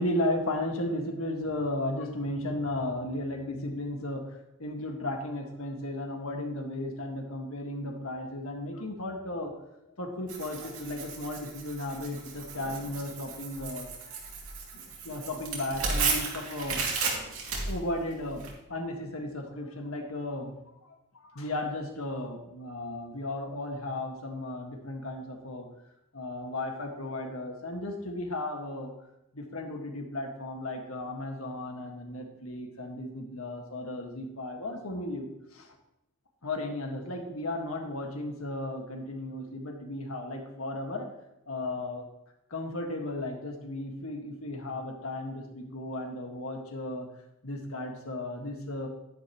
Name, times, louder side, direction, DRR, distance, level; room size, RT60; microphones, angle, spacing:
voice 1, 0.0-4.3 4.6-9.5 10.0-14.2 14.7-16.8 17.7-18.4 18.7-20.5 20.8-25.7 26.1-28.9 29.3-35.7 36.4-41.1 41.5-42.1 42.5-47.1 47.4-48.9, left 1 dB, 80° left, 3 dB, 1.7 m, -35 dB
Tearing, 10.3-18.5, right 4 dB, 80° right, 2.4 m, -34 dB
11.0 x 10.5 x 3.0 m, 0.85 s
head